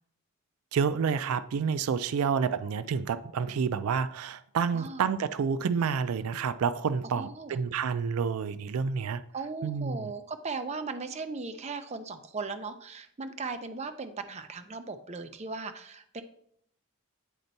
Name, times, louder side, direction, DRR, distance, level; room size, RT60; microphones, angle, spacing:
voice 1, 0.7-9.2 9.6-10.1, right 6 dB, 85° right, 14 dB, 0.4 m, -29 dB
voice 2, 4.7-5.1 7.2-7.6 9.3-16.2, right 4 dB, 30° right, 9 dB, 0.5 m, -38 dB
9.1 x 4.3 x 4.0 m, 0.69 s
head